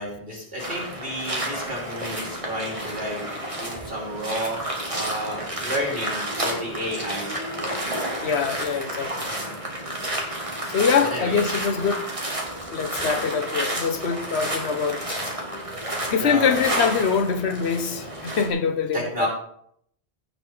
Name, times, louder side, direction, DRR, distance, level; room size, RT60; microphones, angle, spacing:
voice 1, 0.0-3.2 3.5-4.6 4.9-7.3 7.6-7.7 9.4-9.5 11.1-11.4 13.0-13.2 16.2-16.6 18.9-19.3, equal, 60° right, 3.1 m, -31 dB
sound 1, 0.6-18.5, right 1 dB, 30° right, 2.1 m, -31 dB
voice 2, 8.2-9.3 10.7-12.1 12.7-15.2 16.1-19.3, left 6 dB, 85° left, 1.3 m, -24 dB
15.5 x 5.5 x 4.7 m
omnidirectional pair, 1.1 m